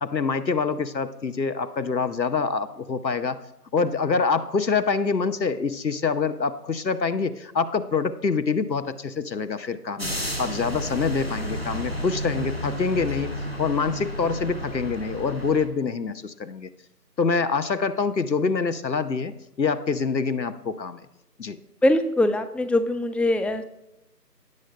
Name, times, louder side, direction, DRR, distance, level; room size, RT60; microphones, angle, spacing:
voice 1, 0.0-3.4 3.7-13.3 13.6-16.7 17.2-19.3 19.6-21.0 21.4-21.6, left 5 dB, 85° left, 11 dB, 0.9 m, -25 dB
sound 1, 10.0-15.7, equal, 35° right, 0.9 m, -32 dB
voice 2, 21.8-23.6, left 1 dB, 5° left, 10 dB, 0.4 m, -22 dB
17.0 x 8.4 x 2.2 m, 0.87 s
figure-of-eight pair, 170°, 50 cm